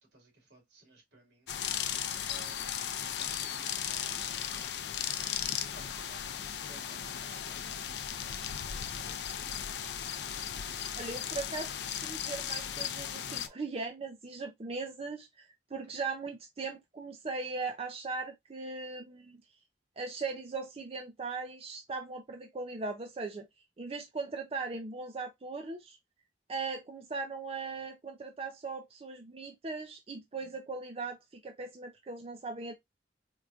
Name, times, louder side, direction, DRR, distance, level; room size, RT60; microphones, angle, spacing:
voice 1, 0.0-1.5 2.2-4.8 5.7-9.9 15.9-16.0, right 2 dB, 80° right, 2.1 m, -59 dB
sound 1, 1.5-13.5, left 9 dB, 65° left, 0.4 m, -36 dB
voice 2, 11.0-15.5 15.7-19.4 20.0-23.5 23.8-26.0 26.5-32.8, right 4 dB, 35° right, 0.5 m, -39 dB
4.5 x 2.5 x 2.3 m
head